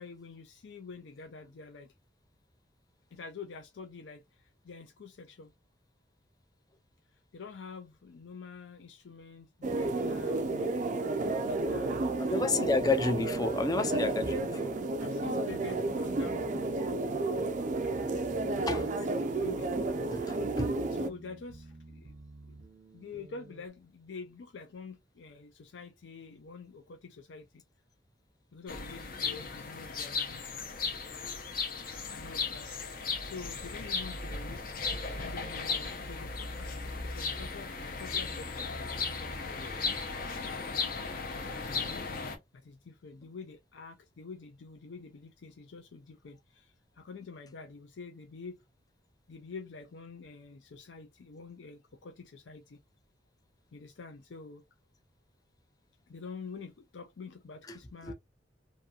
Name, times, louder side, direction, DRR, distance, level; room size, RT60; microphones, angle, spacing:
voice 1, 0.0-1.9 3.1-4.2 4.6-5.5 7.3-10.8 11.3-12.6 15.0-16.7 17.7-19.7 20.7-22.2 22.5-22.6 22.9-27.6 28.5-30.5 32.1-32.7 33.2-34.6 35.2-39.8 41.4-42.1 42.5-48.6 49.3-52.8 53.7-54.6 56.1-58.1, left 4 dB, 85° left, 0.5 m, -47 dB
sound 1, 9.6-21.1, right 2 dB, 45° right, 0.4 m, -32 dB
sound 2, 11.4-23.7, right 2 dB, 85° right, 0.6 m, -52 dB
voice 2, 12.2-14.8 18.7-18.9 20.1-20.7 40.6-40.7 57.7-57.8 58.0-58.1, left 3 dB, 20° left, 0.4 m, -31 dB
sound 3, 28.7-42.4, left 4 dB, 55° left, 0.7 m, -36 dB
2.7 x 2.6 x 2.3 m
head